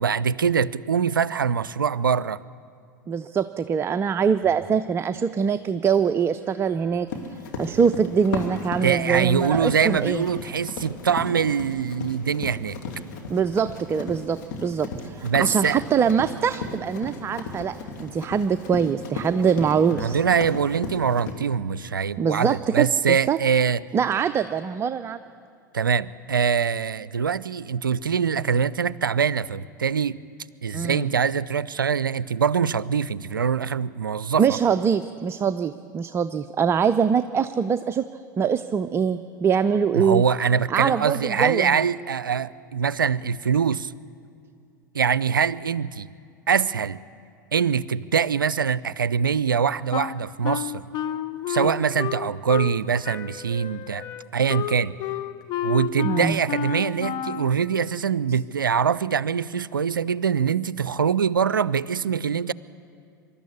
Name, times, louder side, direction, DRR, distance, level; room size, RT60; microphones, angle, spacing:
voice 1, 0.0-2.4 8.8-12.8 15.2-15.8 19.9-23.8 25.7-30.2 30.6-34.6 39.9-43.9 44.9-46.1 46.5-47.0 47.5-50.9 51.5-54.1 54.3-54.9 55.6-62.5, right 7 dB, 85° right, 20 dB, 0.4 m, -23 dB
voice 2, 3.1-7.1 7.6-10.2 13.3-20.2 22.2-23.4 23.9-25.2 28.4-28.5 30.7-31.2 34.4-38.1 38.4-40.2 40.7-41.8 51.7-51.9 56.0-56.4, right 7 dB, 25° right, 12 dB, 0.5 m, -23 dB
sound 1, 4.4-10.3 10.8-14.7 15.5-22.1, left 2 dB, 85° left, 6.7 m, -54 dB
Run, 7.1-21.3, left 3 dB, 60° left, 2.7 m, -35 dB
Wind instrument woodwind instrument, 49.9-52.8 53.0-57.5, left 10 dB, 40° left, 0.9 m, -30 dB
24.5 x 12.5 x 8.4 m, 2.4 s
figure-of-eight pair, 85°, 11 cm